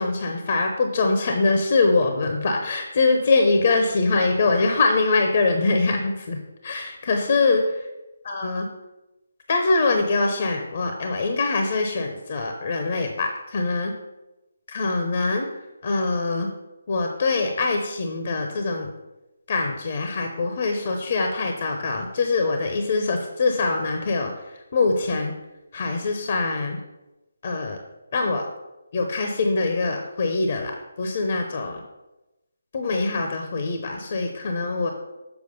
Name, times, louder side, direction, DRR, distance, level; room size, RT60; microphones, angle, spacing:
voice 1, 0.0-6.4 6.6-7.6 8.2-8.7 9.5-13.9 14.7-15.5 15.8-16.5 16.9-18.9 19.5-24.3 24.7-25.3 25.7-26.8 27.4-27.8 28.1-28.4 28.9-30.7 31.0-31.8 32.7-34.9, left 3 dB, 45° left, 4 dB, 0.8 m, -23 dB
6.9 x 4.7 x 5.4 m, 1.0 s
figure-of-eight pair, 155°, 0 cm